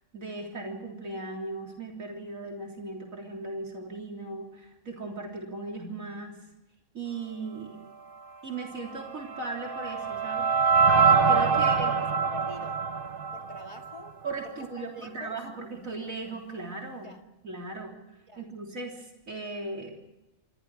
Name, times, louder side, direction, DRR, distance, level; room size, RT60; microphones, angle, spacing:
voice 1, 0.1-6.4 6.9-7.9 8.4-10.5 11.3-12.0 14.2-17.1 17.4-17.9 18.4-20.0, right 3 dB, 80° right, 0 dB, 3.9 m, -37 dB
sound 1, 8.9-14.1, right 5 dB, 45° right, 1.0 m, -24 dB
voice 2, 11.5-12.8 13.3-14.2 14.8-15.4 17.0-17.2 18.3-18.4, left 2 dB, 25° right, 3 dB, 1.9 m, -46 dB
26.0 x 25.0 x 4.8 m, 0.97 s
omnidirectional pair, 1.4 m